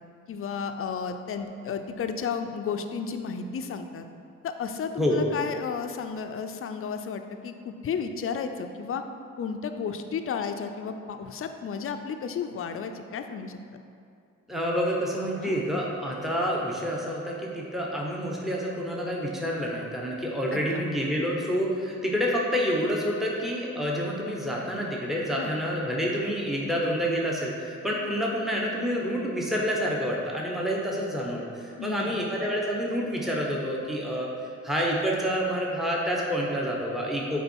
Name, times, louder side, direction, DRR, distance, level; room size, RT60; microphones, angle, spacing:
voice 1, 0.3-4.1 4.4-9.0 9.4-13.6 15.4-15.6 20.5-20.8 25.4-25.5 31.8-32.2, left 6 dB, 45° left, 7 dB, 0.6 m, -33 dB
voice 2, 14.5-34.3 34.6-37.4, equal, ahead, -3 dB, 1.0 m, -28 dB
6.8 x 4.7 x 4.5 m, 2.4 s
cardioid pair, 90°, 30 cm